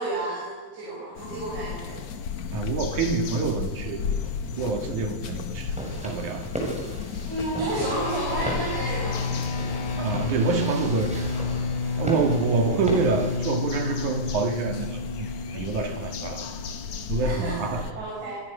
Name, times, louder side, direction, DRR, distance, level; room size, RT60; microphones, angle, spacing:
voice 1, 0.0-2.1 7.3-9.2 17.2-18.4, right 2 dB, 75° right, 8.9 m, -31 dB
sound 1, 1.1-17.9, left 6 dB, 50° left, 2.5 m, -35 dB
voice 2, 2.5-4.0 4.5-5.8 6.0-6.5 10.0-11.3 11.9-15.3 15.5-16.5 17.1-17.9, right 4 dB, 50° right, 3.0 m, -27 dB
sound 2, 5.5-13.4, equal, ahead, 6.8 m, -35 dB
sound 3, 7.8-17.4, left 4 dB, 85° left, 5.3 m, -31 dB
26.0 x 26.0 x 6.8 m
omnidirectional pair, 5.1 m